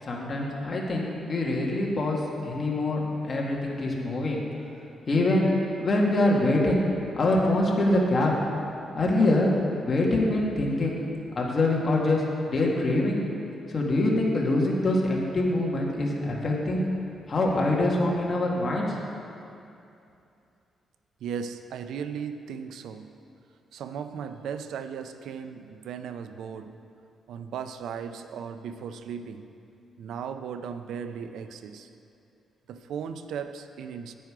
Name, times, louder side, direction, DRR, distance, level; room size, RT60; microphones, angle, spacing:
voice 1, 0.0-4.4 5.1-5.5 5.8-6.8 7.2-8.3 8.9-9.5 9.8-11.0 11.3-13.2 13.7-16.9 17.3-19.0, left 2 dB, 35° left, -2 dB, 1.8 m, -24 dB
voice 2, 21.2-23.2 23.7-26.8 27.3-29.5 30.0-31.9 32.7-34.1, right 7 dB, 85° right, 9 dB, 0.5 m, -36 dB
10.5 x 9.3 x 4.9 m, 2.6 s
cardioid pair, 135°, 0 cm